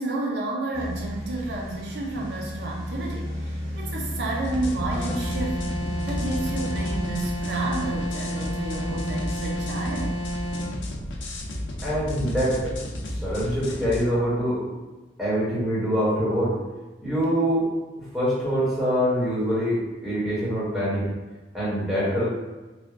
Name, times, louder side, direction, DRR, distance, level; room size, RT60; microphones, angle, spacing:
voice 1, 0.0-5.7 6.1-10.2, right 2 dB, 65° right, -1 dB, 0.5 m, -31 dB
sound 1, 0.7-7.1, equal, 40° right, 1.5 m, -33 dB
sound 2, 4.4-14.0, left 1 dB, 90° left, 0.6 m, -33 dB
sound 3, 4.9-10.7, right 1 dB, 40° left, 1.0 m, -31 dB
voice 2, 11.8-12.7 13.2-14.6 15.2-16.5 17.0-17.7 18.1-21.1 21.5-22.2, equal, ahead, -10 dB, 1.4 m, -24 dB
3.2 x 2.5 x 3.7 m, 1.2 s
head